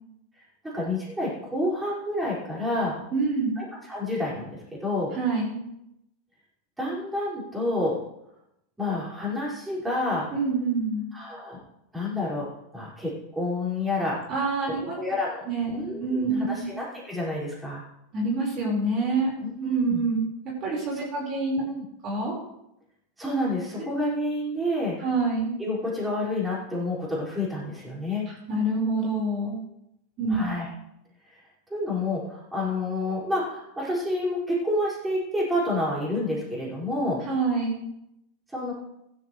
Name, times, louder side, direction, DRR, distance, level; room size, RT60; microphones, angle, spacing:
voice 1, 0.6-3.0 3.6-5.1 6.8-8.0 8.8-10.3 11.1-11.6 11.9-12.5 12.7-14.2 14.9-15.5 15.7-17.8 19.4-20.0 20.9-21.1 21.6-21.8 23.2-25.0 25.6-28.3 30.3-30.7 31.7-37.2 38.5-38.7, left 1 dB, 10° right, -7 dB, 5.4 m, -29 dB
voice 2, 3.1-3.5 5.2-5.6 10.3-11.0 14.3-14.9 15.5-16.7 18.1-19.3 19.6-20.2 20.6-21.6 22.0-22.3 25.0-25.5 28.5-29.6 30.2-30.4 37.3-37.8, right 3 dB, 40° right, -2 dB, 4.8 m, -26 dB
15.5 x 13.0 x 3.2 m, 0.82 s
supercardioid pair, 135°, 0 cm